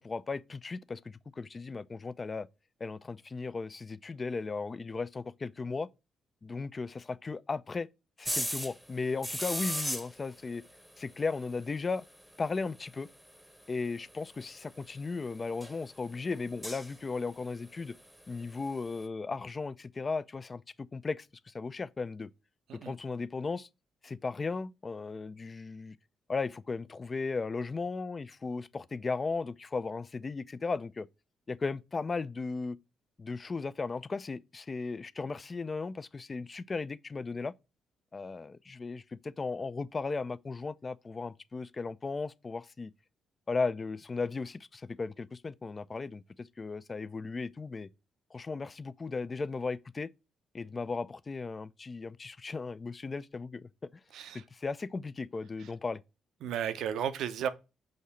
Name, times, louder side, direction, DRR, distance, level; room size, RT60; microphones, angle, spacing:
voice 1, 0.0-2.5 2.8-5.9 6.4-7.9 8.2-10.6 11.0-12.0 12.4-13.1 13.7-17.9 18.3-20.6 20.9-22.3 22.8-23.7 24.0-26.0 26.3-31.1 31.5-32.8 33.2-37.5 38.1-42.9 43.5-47.9 48.3-50.1 50.5-53.7 54.3-56.0, left 4 dB, 30° left, 0.3 m, -36 dB
sound 1, 8.2-8.8 9.2-10.5 10.9-11.0 11.2-11.3 11.5-11.6 13.4-13.5 14.2-14.3 15.0-15.2 15.6-15.8 16.3-17.2 18.9-19.0, equal, 5° right, 0.8 m, -35 dB
voice 2, 54.1-54.4 55.6-55.7 56.4-57.5, right 9 dB, 80° right, 0.6 m, -34 dB
6.4 x 2.8 x 5.6 m
cardioid pair, 90°, 0 cm